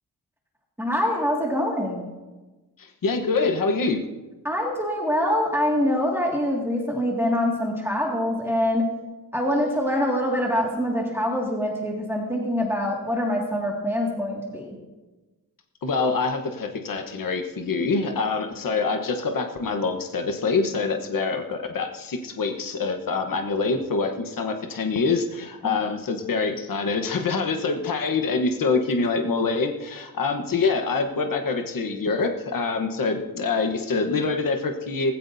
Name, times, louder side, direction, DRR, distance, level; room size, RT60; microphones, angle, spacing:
voice 1, 0.8-2.0 4.4-8.9 9.3-14.8 25.6-25.8, left 1 dB, 5° right, -2 dB, 2.1 m, -24 dB
voice 2, 2.8-4.0 15.8-35.1, left 4 dB, 60° left, 5 dB, 1.1 m, -25 dB
19.0 x 16.0 x 2.7 m, 1.2 s
wide cardioid pair, 165°, 38 cm